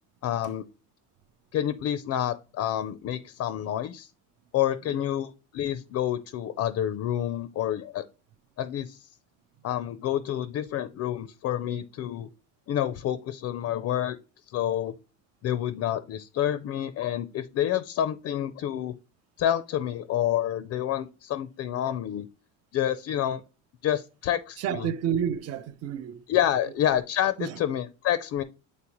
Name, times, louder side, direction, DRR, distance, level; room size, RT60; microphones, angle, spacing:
voice 1, 0.2-0.6 1.5-4.1 4.5-8.0 8.6-9.1 9.6-12.3 12.7-14.2 14.5-14.9 15.4-18.9 19.4-22.3 22.7-23.4 23.8-24.9 26.3-28.4, left 11 dB, 45° left, 0.5 m, -28 dB
voice 2, 24.6-26.2 26.6-26.7 27.4-27.6, right 9 dB, 45° right, 0.5 m, -30 dB
8.5 x 4.1 x 2.9 m
cardioid pair, 160°, 35 cm